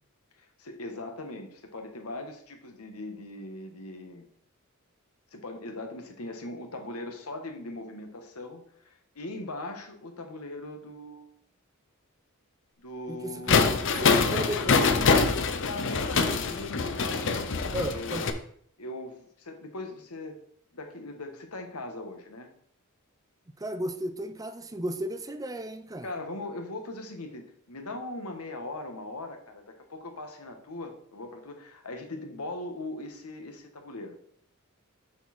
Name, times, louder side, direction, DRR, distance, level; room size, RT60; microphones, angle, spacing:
voice 1, 0.4-4.3 5.3-11.3 12.8-14.3 14.6-15.1 15.4-17.3 17.8-18.3 18.8-20.4 20.7-22.5 26.0-34.2, left 2 dB, 90° left, 5 dB, 1.4 m, -40 dB
voice 2, 13.1-14.9 16.1-16.4 17.7-18.2 23.6-26.1, right 1 dB, 15° right, 9 dB, 0.5 m, -35 dB
sound 1, 13.5-18.3, left 4 dB, 60° left, 0.8 m, -24 dB
7.1 x 6.3 x 4.3 m, 0.62 s
head